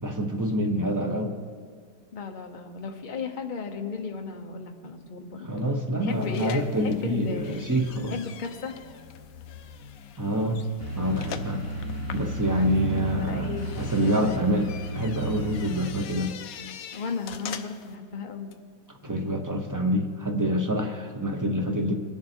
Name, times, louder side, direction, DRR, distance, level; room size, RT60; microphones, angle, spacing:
voice 1, 0.0-1.3 5.4-8.1 10.2-10.6 11.0-11.6 12.1-16.4 19.0-21.9, equal, 25° right, 2 dB, 0.4 m, -26 dB
voice 2, 2.1-5.5 6.0-7.6 8.1-8.8 12.6-12.7 13.2-13.9 16.9-18.5, left 5 dB, 35° left, 4 dB, 0.9 m, -35 dB
sound 1, 6.1-18.0, left 9 dB, 70° left, 1.0 m, -44 dB
sound 2, 10.8-15.9, equal, 10° left, 3.7 m, -34 dB
21.0 x 7.2 x 4.4 m, 2.2 s
omnidirectional pair, 1.8 m